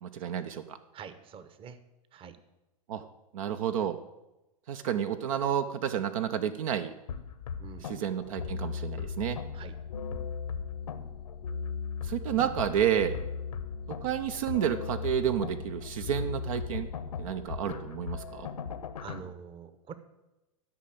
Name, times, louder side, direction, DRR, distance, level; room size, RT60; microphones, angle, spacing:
voice 1, 0.0-0.8 2.9-3.0 3.3-4.0 4.7-6.9 7.8-9.4 12.0-13.1 14.0-16.9 17.2-18.5, right 9 dB, 65° right, 9 dB, 0.8 m, -30 dB
voice 2, 0.9-1.8 2.1-2.4 7.6-7.9 9.5-9.7 19.0-19.9, right 7 dB, 30° right, 12 dB, 1.0 m, -45 dB
sound 1, 7.1-19.2, left 6 dB, 80° left, 1.0 m, -37 dB
12.0 x 5.8 x 7.8 m, 1.0 s
hypercardioid pair, 105°, 19 cm